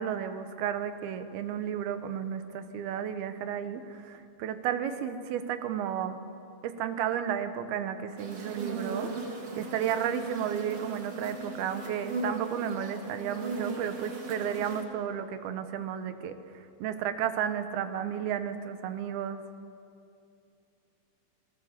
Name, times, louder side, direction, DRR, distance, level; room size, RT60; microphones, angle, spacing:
voice 1, 0.0-6.2 6.6-9.1 9.6-16.4 16.8-19.4, right 9 dB, 90° right, 9 dB, 3.0 m, -33 dB
sound 1, 8.2-14.8, right 3 dB, 45° right, 2.9 m, -38 dB
28.0 x 17.5 x 7.3 m, 2.6 s
omnidirectional pair, 4.3 m